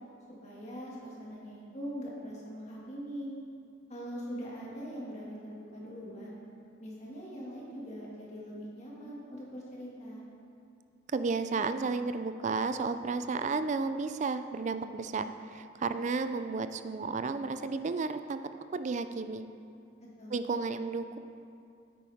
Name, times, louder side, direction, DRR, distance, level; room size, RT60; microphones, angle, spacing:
voice 1, 0.4-3.3 3.9-6.4 6.8-10.2 20.0-20.4, equal, 35° left, -5 dB, 2.0 m, -42 dB
voice 2, 11.1-15.3 15.5-18.4 18.7-19.4 20.3-21.2, right 4 dB, 40° right, 10 dB, 0.3 m, -32 dB
9.2 x 9.0 x 3.5 m, 2.5 s
head